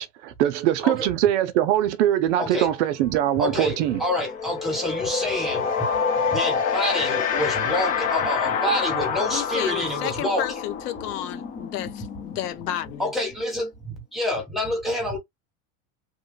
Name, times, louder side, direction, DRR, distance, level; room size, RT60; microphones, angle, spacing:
voice 1, 0.0-4.0, right 12 dB, 50° right, 0.6 m, -22 dB
sound 1, 2.7-2.8 3.1-13.7, left 6 dB, 20° left, 0.4 m, -28 dB
voice 2, 3.4-5.9 6.3-10.5 13.0-15.2, left 1 dB, ahead, 1.3 m, -27 dB
voice 3, 9.3-13.1, left 12 dB, 85° left, 1.0 m, -32 dB
3.0 x 2.3 x 3.8 m
supercardioid pair, 155°, 45 cm